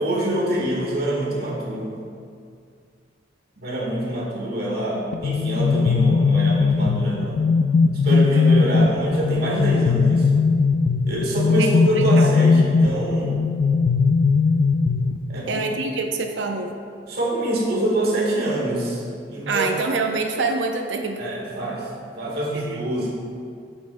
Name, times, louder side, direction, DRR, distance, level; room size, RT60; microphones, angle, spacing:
voice 1, 0.0-2.0 3.6-7.4 8.0-10.3 11.1-13.4 15.3-15.6 17.1-19.0 19.3-19.7 21.2-21.9 22.2-23.1, right 1 dB, 60° right, -4 dB, 1.5 m, -25 dB
sound 1, 5.1-15.6, left 4 dB, 75° left, 0.3 m, -19 dB
voice 2, 11.9-12.5 15.5-16.7 19.5-21.2 22.5-22.8, right 3 dB, 80° right, 4 dB, 0.6 m, -26 dB
8.0 x 7.0 x 2.2 m, 2.3 s
head